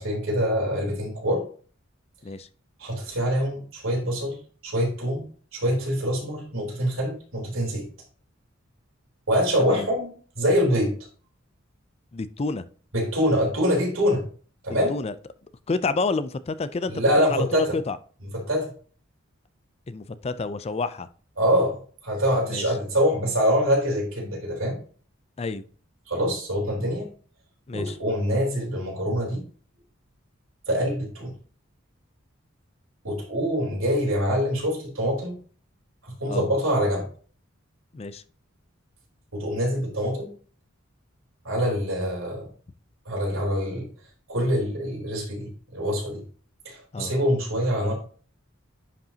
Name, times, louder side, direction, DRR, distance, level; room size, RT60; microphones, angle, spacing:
voice 1, 0.0-1.4 2.8-4.4 4.6-5.3 5.5-7.9 9.3-10.9 12.9-14.2 14.6-14.9 16.9-17.7 18.5-18.7 21.4-24.8 26.1-27.1 27.7-29.4 30.7-31.3 33.0-35.4 36.0-37.1 39.3-40.3 41.4-42.5 43.1-43.9 44.3-46.2 46.7-47.9, equal, 85° right, -2 dB, 3.7 m, -25 dB
voice 2, 12.1-12.6 14.9-15.1 15.7-18.0 19.9-21.1 22.5-22.6 25.4-25.6 27.7-28.0 36.3-36.5 37.9-38.2 46.9-47.1, left 3 dB, 30° left, 14 dB, 0.4 m, -29 dB
10.5 x 5.3 x 2.8 m, 0.41 s
head